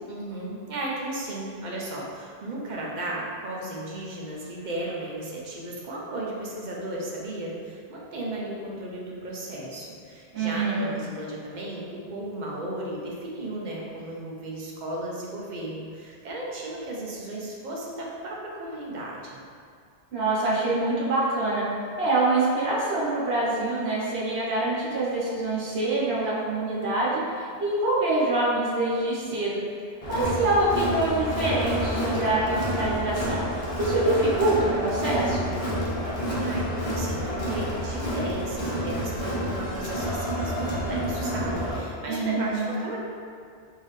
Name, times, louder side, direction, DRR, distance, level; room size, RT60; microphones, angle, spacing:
voice 1, 0.1-19.4 36.4-36.7 37.0-43.0, right 1 dB, 50° right, -3 dB, 0.7 m, -35 dB
voice 2, 10.3-11.0 20.1-21.6 22.0-27.2 27.6-29.6 30.1-33.4 33.8-35.5 42.1-42.7, right 2 dB, 70° right, -8 dB, 1.2 m, -25 dB
Crowd, 30.0-41.8, equal, 35° left, 0.7 m, -29 dB
3.7 x 2.6 x 3.2 m, 2.2 s
omnidirectional pair, 1.1 m